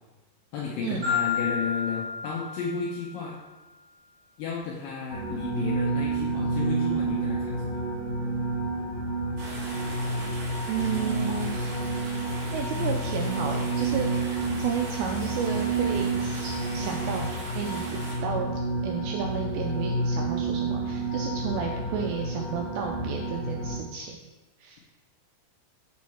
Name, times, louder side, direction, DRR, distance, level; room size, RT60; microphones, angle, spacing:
voice 1, 0.5-3.4 4.4-7.8 14.4-14.6, left 6 dB, 80° left, -3 dB, 2.0 m, -33 dB
Marimba xylophone, 1.0-3.2, left 6 dB, 40° right, 1.2 m, -30 dB
sound 1, 5.1-23.8, right 2 dB, 65° left, 2.1 m, -29 dB
sound 2, 9.4-18.2, right 1 dB, 60° right, 3.3 m, -40 dB
voice 2, 10.7-11.8 12.5-17.2 17.6-18.5 18.8-24.2 24.6-24.8, right 7 dB, 85° right, 2 dB, 2.1 m, -32 dB
7.2 x 4.6 x 4.2 m, 1.2 s
omnidirectional pair, 4.8 m